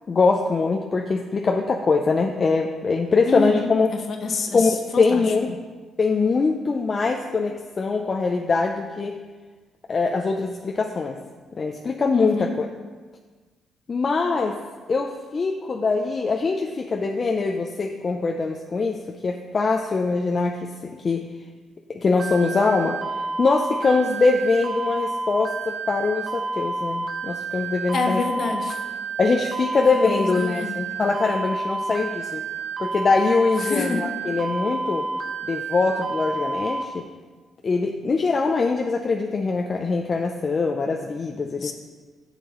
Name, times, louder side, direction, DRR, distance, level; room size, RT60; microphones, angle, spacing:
voice 1, 0.1-3.9 4.5-5.5 6.0-9.1 9.9-11.2 11.6-12.7 13.9-14.6 14.9-21.3 21.9-23.0 23.4-28.2 29.2-32.4 32.8-35.1 35.4-37.1 37.6-41.7, left 4 dB, 40° left, 2 dB, 0.5 m, -23 dB
voice 2, 3.2-3.7 4.1-5.2 12.1-12.5 27.9-28.8 30.0-30.7 33.6-34.0 41.6-41.7, left 4 dB, 55° left, 4 dB, 1.1 m, -27 dB
sound 1, 22.2-36.8, right 3 dB, 65° right, 0.9 m, -30 dB
11.0 x 6.6 x 3.1 m, 1.4 s
cardioid pair, 90°, 0 cm